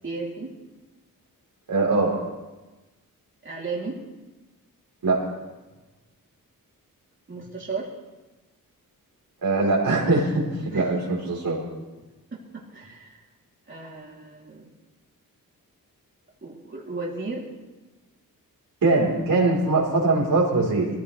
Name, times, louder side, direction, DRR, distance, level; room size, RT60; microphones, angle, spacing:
voice 1, 0.0-0.5 3.4-4.0 7.3-7.9 10.7-10.9 12.3-13.2 13.7-14.7 16.4-17.4, right 3 dB, 35° right, -5 dB, 3.2 m, -34 dB
voice 2, 1.7-2.2 5.0-5.2 9.4-11.6 18.8-20.9, right 3 dB, 70° right, -3 dB, 4.2 m, -22 dB
21.0 x 15.5 x 3.4 m, 1.1 s
wide cardioid pair, 105°, 35 cm